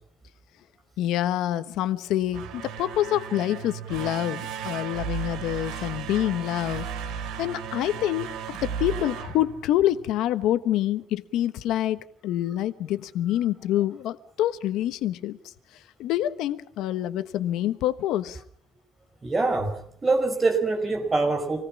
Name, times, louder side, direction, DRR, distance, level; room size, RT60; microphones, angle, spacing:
voice 1, 1.0-6.9 7.4-15.4 16.0-18.4, left 13 dB, 70° left, 12 dB, 1.2 m, -26 dB
sound 1, 2.2-10.2, right 8 dB, 75° right, 3.4 m, -35 dB
voice 2, 19.2-21.7, right 3 dB, 15° right, 3 dB, 5.0 m, -25 dB
27.0 x 18.5 x 6.1 m, 0.63 s
cardioid pair, 180°, 0 cm